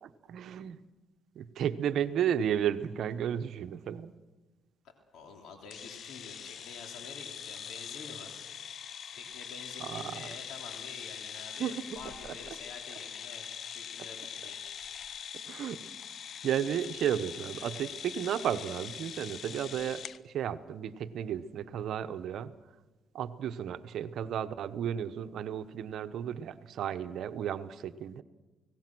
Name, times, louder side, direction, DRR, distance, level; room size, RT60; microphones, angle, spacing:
voice 1, 0.0-0.8 1.3-4.1 9.8-10.3 11.6-11.8 12.2-12.3 15.5-15.8 16.4-22.5 23.1-28.2, right 9 dB, 70° right, 11 dB, 1.0 m, -33 dB
voice 2, 5.1-8.4 9.1-14.6, left 5 dB, 80° left, 3 dB, 3.2 m, -48 dB
sound 1, 5.7-20.2, left 8 dB, 60° left, 0.7 m, -43 dB
30.0 x 18.0 x 6.2 m, 1.2 s
cardioid pair, 90°, 0 cm